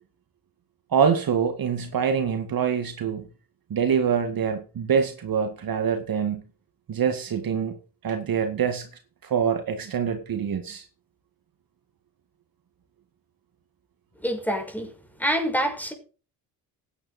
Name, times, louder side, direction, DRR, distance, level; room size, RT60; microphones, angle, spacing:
voice 1, 0.9-3.2 3.7-6.4 6.9-7.7 8.0-8.9 9.2-10.9, right 7 dB, 50° right, 2.1 m, -25 dB
voice 2, 14.2-14.9 15.2-15.9, equal, 5° left, 6.0 m, -26 dB
14.5 x 10.0 x 4.3 m
hypercardioid pair, 55°, 44 cm